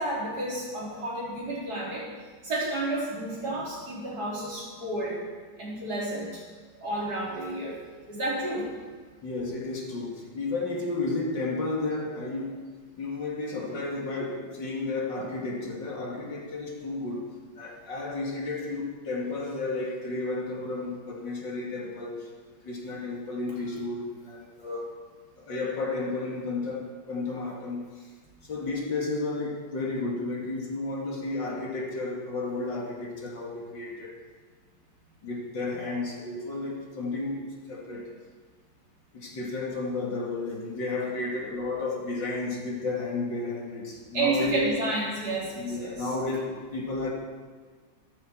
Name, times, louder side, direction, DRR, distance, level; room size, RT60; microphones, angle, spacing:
voice 1, 0.0-2.1 2.4-5.2 5.6-6.4 6.8-7.8 8.1-8.8 44.1-46.1, right 2 dB, 55° right, -5 dB, 4.3 m, -31 dB
voice 2, 9.2-12.6 13.0-22.3 22.6-24.9 25.4-28.1 28.5-34.2 35.2-38.1 39.1-44.6 45.6-47.1, left 3 dB, 80° left, -2 dB, 3.1 m, -32 dB
14.5 x 13.0 x 4.6 m, 1.5 s
omnidirectional pair, 2.0 m